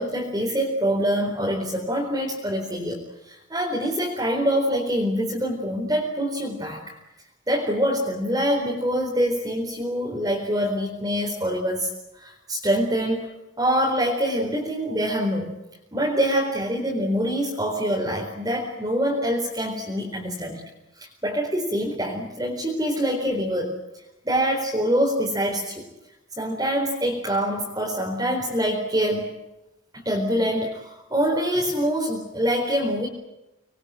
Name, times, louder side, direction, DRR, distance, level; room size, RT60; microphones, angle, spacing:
voice 1, 0.0-3.0 3.2-7.0 7.5-11.9 12.2-13.3 13.6-15.6 15.9-20.6 21.0-23.8 24.2-25.9 26.4-29.3 29.9-33.1, equal, 20° right, -1 dB, 4.3 m, -25 dB
26.0 x 22.0 x 9.1 m, 0.93 s
head